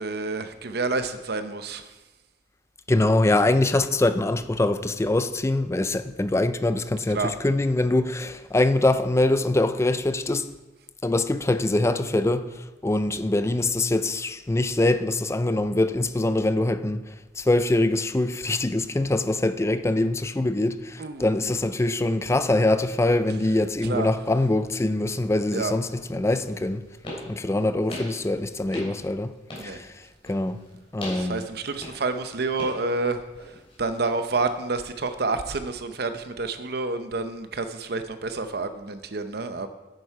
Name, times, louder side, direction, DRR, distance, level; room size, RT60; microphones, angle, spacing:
voice 1, 0.0-1.9 7.1-7.3 21.0-21.3 23.8-24.1 25.5-25.7 29.5-29.8 31.1-33.2 33.8-39.7, right 3 dB, 60° right, 0.7 m, -29 dB
voice 2, 2.9-10.5 11.0-12.5 12.8-17.0 17.4-26.8 27.3-29.3 29.6-29.9 30.3-30.6 30.9-31.5, left 2 dB, 15° left, 0.4 m, -23 dB
sound 1, 22.1-35.0, left 1 dB, 35° left, 3.3 m, -43 dB
10.0 x 8.0 x 4.8 m
head